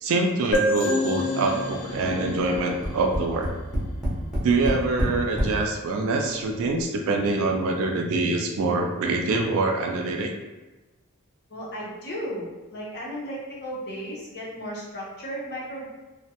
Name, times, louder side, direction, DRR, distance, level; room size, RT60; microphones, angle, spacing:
voice 1, 0.0-3.5 4.4-10.3, right 3 dB, 70° right, 2 dB, 0.3 m, -25 dB
sound 1, 0.5-4.1, left 1 dB, 80° left, 0.4 m, -28 dB
Tap, 2.5-5.6 6.4-6.5 6.8-6.9, equal, ahead, 0.7 m, -27 dB
voice 2, 11.5-15.9, equal, 50° left, -5 dB, 0.7 m, -35 dB
2.3 x 2.1 x 2.7 m, 1.1 s
head